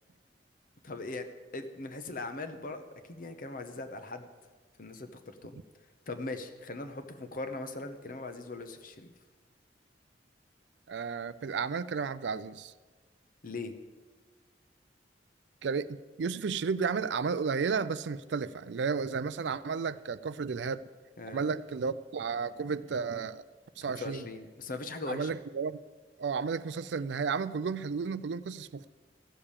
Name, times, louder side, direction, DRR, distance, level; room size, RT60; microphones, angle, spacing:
voice 1, 0.8-1.3 1.5-2.8 3.1-4.3 4.8-5.5 6.1-9.1 13.4-13.7 21.2-21.5 23.9-25.3, left 2 dB, 50° left, 9 dB, 0.9 m, -40 dB
voice 2, 10.9-12.7 15.6-20.8 21.3-23.4 23.8-24.3 25.1-25.8 26.2-28.9, right 5 dB, 70° right, 15 dB, 0.4 m, -33 dB
14.0 x 6.8 x 7.2 m, 1.4 s
head